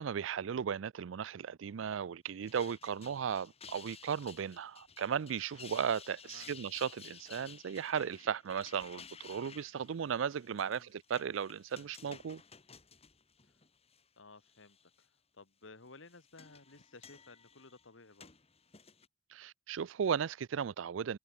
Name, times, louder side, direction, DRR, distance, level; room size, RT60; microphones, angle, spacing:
voice 1, 0.0-12.4 19.3-21.2, right 7 dB, 70° right, 0.4 m, -36 dB
sound 1, 2.3-14.0 14.4-15.0 15.9-19.1, left 6 dB, 30° left, 2.5 m, -55 dB
voice 2, 14.2-18.3, left 3 dB, 70° left, 1.9 m, -56 dB
head